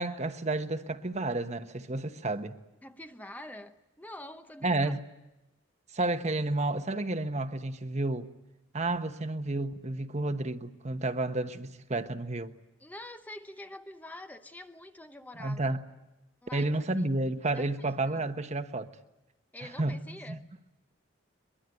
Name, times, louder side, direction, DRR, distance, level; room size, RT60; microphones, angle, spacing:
voice 1, 0.0-2.6 4.6-5.0 5.9-8.3 8.7-12.5 15.4-15.8 16.5-18.9 19.6-20.4, right 2 dB, 35° right, 1.1 m, -31 dB
voice 2, 2.8-4.9 12.8-15.8 16.4-17.0 17.5-18.3 19.5-20.4, left 1 dB, 10° left, 0.8 m, -46 dB
23.0 x 22.5 x 9.2 m
head